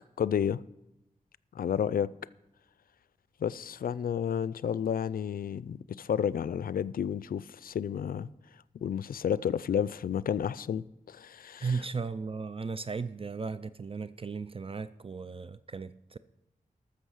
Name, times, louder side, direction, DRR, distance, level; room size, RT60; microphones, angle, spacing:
voice 1, 0.2-0.6 1.5-2.1 3.4-8.3 8.7-11.8, left 8 dB, 80° left, 0.4 m, -31 dB
voice 2, 11.6-16.2, right 5 dB, 40° right, 0.4 m, -36 dB
13.5 x 6.7 x 6.4 m
wide cardioid pair, 70°, 15 cm